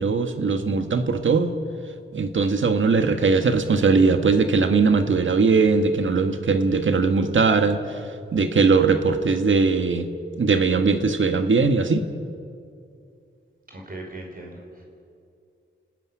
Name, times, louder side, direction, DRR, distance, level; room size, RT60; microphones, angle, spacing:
voice 1, 0.0-1.5 2.1-8.0 8.3-10.1 10.4-12.0, right 4 dB, 75° right, 7 dB, 1.7 m, -20 dB
voice 2, 13.7-14.8, right 2 dB, 45° right, -1 dB, 5.1 m, -38 dB
30.0 x 19.5 x 9.7 m, 2.4 s
wide cardioid pair, 125°, 20 cm